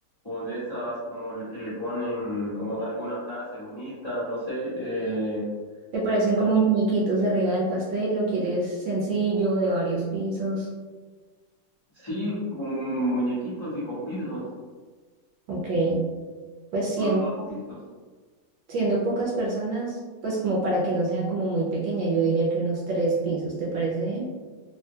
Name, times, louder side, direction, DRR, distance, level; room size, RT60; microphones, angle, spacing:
voice 1, 0.2-5.5 6.4-6.5 11.9-14.5 17.0-17.8, equal, 20° left, -12 dB, 0.8 m, -31 dB
voice 2, 5.9-10.7 15.5-16.0 16.7-17.2 17.5-17.6 18.7-24.2, right 3 dB, 75° right, -4 dB, 1.2 m, -25 dB
3.4 x 2.2 x 2.7 m, 1.4 s
omnidirectional pair, 2.3 m